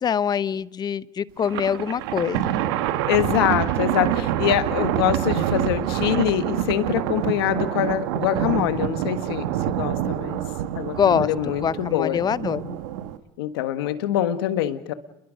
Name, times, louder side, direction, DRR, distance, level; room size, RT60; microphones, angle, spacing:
voice 1, 0.0-2.5 11.0-12.8, left 8 dB, 35° left, 18 dB, 0.7 m, -24 dB
Thunder, 1.4-13.2, right 12 dB, 80° right, 1.5 m, -26 dB
voice 2, 3.1-10.4 10.7-12.2 13.4-14.9, left 12 dB, 85° left, 11 dB, 1.5 m, -24 dB
29.0 x 22.0 x 5.2 m, 0.88 s
supercardioid pair, 90°, 13 cm